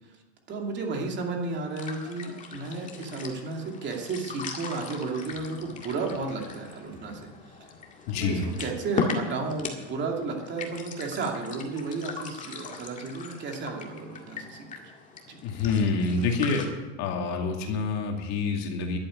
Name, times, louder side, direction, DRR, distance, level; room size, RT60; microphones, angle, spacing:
voice 1, 0.5-7.3 7.6-7.7 8.1-14.9 15.3-15.4 16.1-16.3, right 3 dB, 30° right, 1 dB, 2.6 m, -33 dB
sound 1, 1.5-16.7, left 4 dB, 20° left, 2.0 m, -38 dB
voice 2, 8.1-8.5 15.4-16.7 17.0-19.0, left 4 dB, 50° left, 2 dB, 2.4 m, -27 dB
11.5 x 8.6 x 9.6 m, 1.2 s
supercardioid pair, 140°, 35 cm